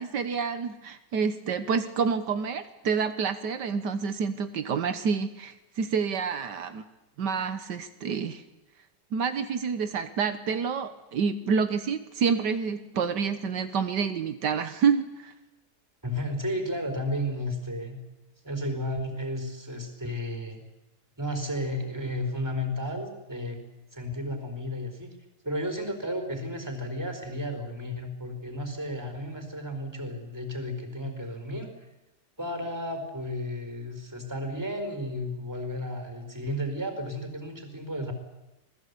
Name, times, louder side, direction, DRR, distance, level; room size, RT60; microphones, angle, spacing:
voice 1, 0.0-6.8 7.2-8.4 9.1-15.3, right 6 dB, 80° right, 10 dB, 1.8 m, -28 dB
voice 2, 16.0-18.0 18.4-20.6 21.2-23.6 23.9-25.1 25.4-31.7 32.4-38.1, left 1 dB, 10° right, 6 dB, 4.7 m, -33 dB
26.5 x 20.0 x 8.4 m, 0.98 s
omnidirectional pair, 1.8 m